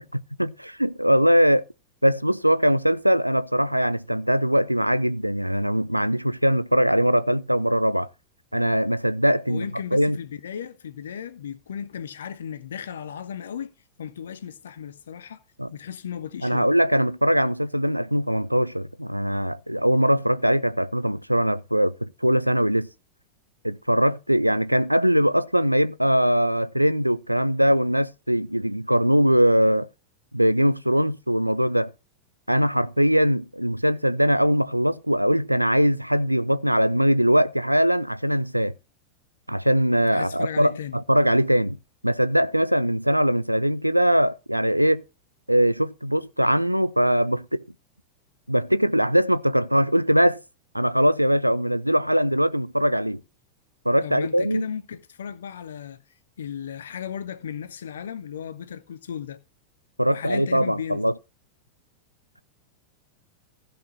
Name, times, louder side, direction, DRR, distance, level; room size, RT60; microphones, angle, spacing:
voice 1, 0.1-1.6 2.0-8.1 8.5-10.2 15.6-15.7 16.4-22.9 23.6-29.9 30.3-31.9 32.5-38.7 39.5-41.8 42.0-45.0 45.5-47.6 48.5-50.4 50.7-53.2 53.9-54.7 60.0-61.1, equal, 90° right, 0.4 m, -21 dB
voice 2, 9.5-15.4 15.7-16.7 40.1-41.0 54.0-56.0 56.4-59.4 60.1-61.1, left 8 dB, 65° left, 1.0 m, -35 dB
15.5 x 5.2 x 5.3 m
figure-of-eight pair, 90°, 0 cm